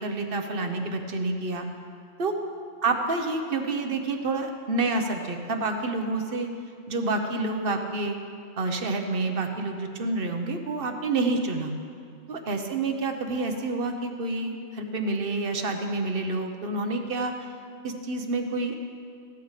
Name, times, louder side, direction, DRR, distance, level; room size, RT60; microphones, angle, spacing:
voice 1, 0.0-1.6 2.2-2.3 2.8-6.5 6.9-8.2 8.6-11.7 12.3-17.3 17.8-18.8, right 3 dB, 50° right, 5 dB, 1.1 m, -28 dB
15.5 x 11.5 x 3.2 m, 2.3 s
omnidirectional pair, 1.3 m